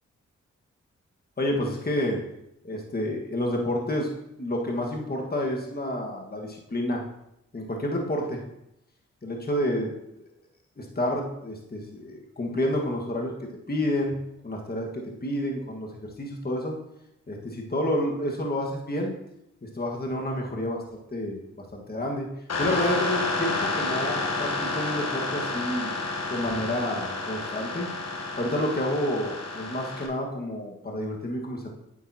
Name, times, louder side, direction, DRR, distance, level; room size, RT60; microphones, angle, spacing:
voice 1, 1.4-2.2 2.6-4.1 4.4-7.0 7.5-8.4 9.2-9.9 10.8-14.2 14.4-16.7 17.3-19.1 19.6-22.3 22.6-25.9 26.3-27.9 28.4-31.7, left 1 dB, 30° left, 0 dB, 1.7 m, -29 dB
sound 1, 22.5-30.1, left 2 dB, 60° left, 1.2 m, -30 dB
9.0 x 7.0 x 2.9 m, 0.81 s
cardioid pair, 50°, 29 cm